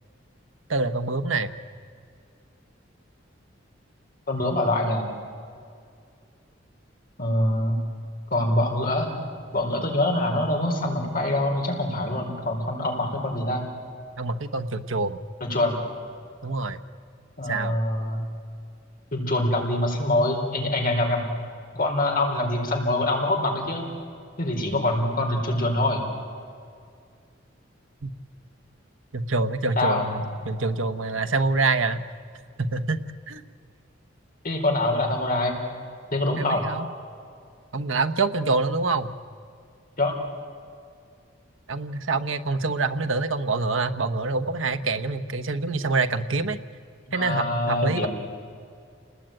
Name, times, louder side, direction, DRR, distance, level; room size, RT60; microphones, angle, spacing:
voice 1, 0.7-1.5 14.2-15.2 16.4-16.8 17.4-17.8 28.0-28.1 29.1-32.0 32.6-33.4 36.4-36.9 37.7-39.1 41.7-46.6 47.1-48.1, right 3 dB, 80° right, 8 dB, 1.1 m, -26 dB
voice 2, 4.3-5.1 7.2-7.8 8.3-9.1 9.5-13.7 15.4-15.8 17.4-18.2 19.1-21.2 21.7-23.9 24.4-26.0 29.8-30.2 34.4-35.6 36.1-36.7 40.0-40.1 47.1-48.1, left 1 dB, 45° left, 1 dB, 4.4 m, -24 dB
29.0 x 20.0 x 9.1 m, 2.3 s
head